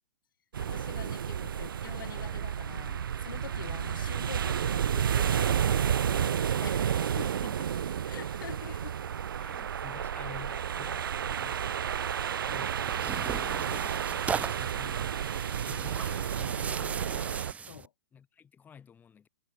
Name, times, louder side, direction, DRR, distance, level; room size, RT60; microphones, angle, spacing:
sound 1, 0.5-17.5, right 8 dB, 85° right, 1.1 m, -31 dB
voice 1, 0.6-7.3 8.1-9.0 13.3-13.7 17.7-17.9, left 9 dB, 80° left, 4.3 m, -46 dB
voice 2, 7.4-8.3 8.6-8.9 9.4-13.3 13.7-13.9 14.5-15.3 15.6-17.4 18.1-19.3, left 7 dB, 15° left, 7.8 m, -51 dB
Tearing, 12.5-17.9, right 6 dB, 10° right, 0.9 m, -38 dB
hypercardioid pair, 145°, 11 cm